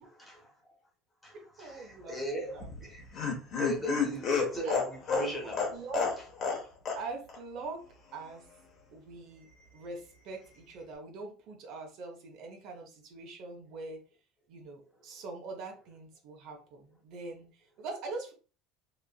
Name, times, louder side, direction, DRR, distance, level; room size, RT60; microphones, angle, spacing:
voice 1, 0.2-0.7 1.2-3.3 3.6-4.8 5.1-5.8, equal, 10° left, -1 dB, 0.9 m, -38 dB
voice 2, 1.3-2.7 3.7-3.9 4.6-4.8 5.4-6.1 6.9-7.9 8.1-8.4 8.9-9.5 9.7-14.0 14.5-18.3, right 3 dB, 50° right, 2 dB, 0.7 m, -43 dB
Laughter, 2.6-6.6 6.9-7.0 7.3-7.4, left 5 dB, 35° left, 0.8 m, -30 dB
3.0 x 2.4 x 2.3 m, 0.36 s
cardioid pair, 165°, 0 cm